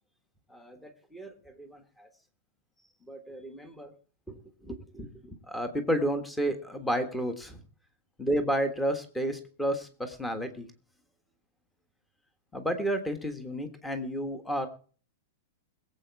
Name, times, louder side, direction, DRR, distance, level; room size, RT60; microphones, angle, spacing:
voice 1, 0.5-2.1 3.1-3.9 4.3-7.6 8.2-10.7 12.5-14.7, right 1 dB, 5° left, 8 dB, 1.4 m, -32 dB
21.0 x 7.9 x 4.7 m, 0.41 s
supercardioid pair, 175°, 0 cm